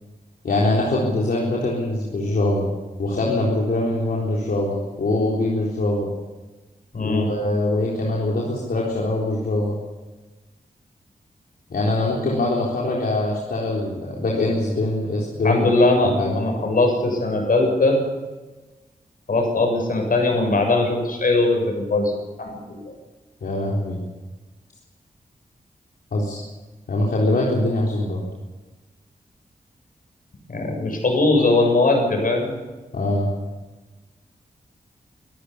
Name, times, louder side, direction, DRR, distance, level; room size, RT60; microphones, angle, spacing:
voice 1, 0.4-2.7 3.0-6.1 7.0-9.8 11.7-15.7 16.2-16.3 23.4-24.0 26.1-26.4 26.9-28.2 32.9-33.3, left 2 dB, 80° left, -3 dB, 4.0 m, -23 dB
voice 2, 6.9-7.3 15.4-18.0 19.3-22.1 22.4-22.9 30.5-32.5, left 2 dB, 65° left, 3 dB, 7.1 m, -20 dB
24.5 x 13.5 x 8.4 m, 1.2 s
wide cardioid pair, 90°, 15 cm